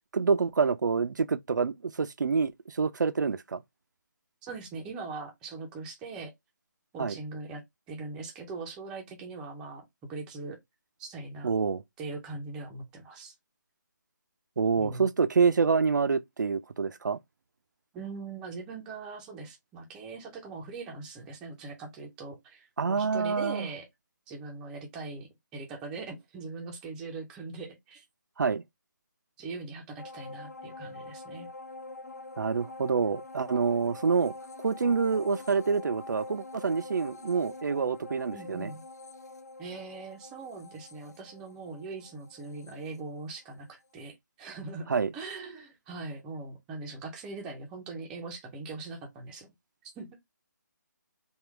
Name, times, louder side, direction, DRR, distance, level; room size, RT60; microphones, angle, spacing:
voice 1, 0.1-3.6 7.0-7.2 11.4-11.8 14.6-17.2 22.8-23.7 28.4-28.6 32.4-38.7 44.9-45.1, right 5 dB, 75° right, 0.5 m, -27 dB
voice 2, 4.4-6.3 6.9-9.8 10.1-10.6 11.0-11.5 12.0-13.3 14.8-15.1 17.9-23.9 24.3-28.0 29.4-31.5 38.3-38.8 39.6-49.5 50.0-50.1, right 3 dB, 5° right, 0.5 m, -41 dB
sound 1, 30.0-43.7 44.0-44.1, left 2 dB, 55° left, 0.8 m, -45 dB
3.5 x 2.3 x 4.4 m
hypercardioid pair, 170°, 10 cm